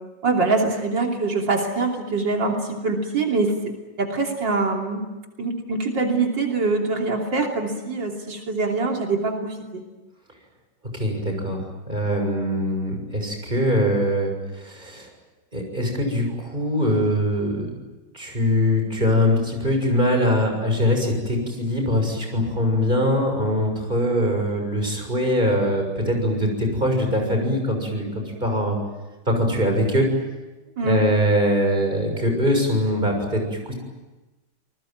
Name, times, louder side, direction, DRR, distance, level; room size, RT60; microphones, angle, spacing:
voice 1, 0.2-3.6 4.0-5.1 5.4-9.8 30.8-31.1, right 3 dB, 90° right, 1 dB, 3.7 m, -24 dB
voice 2, 10.9-11.6 11.9-15.1 15.5-17.7 18.1-28.8 29.3-30.1 30.8-33.7, equal, 25° right, 3 dB, 6.9 m, -22 dB
28.0 x 20.5 x 9.2 m, 1.1 s
omnidirectional pair, 1.9 m